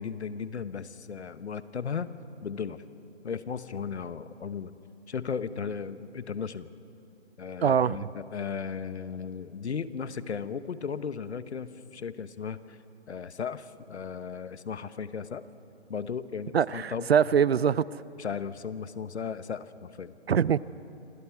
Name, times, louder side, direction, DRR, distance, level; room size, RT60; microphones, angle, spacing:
voice 1, 0.0-2.1 2.4-2.8 3.2-4.7 5.1-6.7 7.4-12.8 13.1-15.4 15.9-17.1 18.2-20.2, left 6 dB, 70° left, 1.2 m, -36 dB
voice 2, 7.6-8.1 16.5-18.0 20.3-20.6, right 7 dB, 60° right, 0.6 m, -23 dB
28.0 x 26.5 x 4.8 m
hypercardioid pair, 155°, 35 cm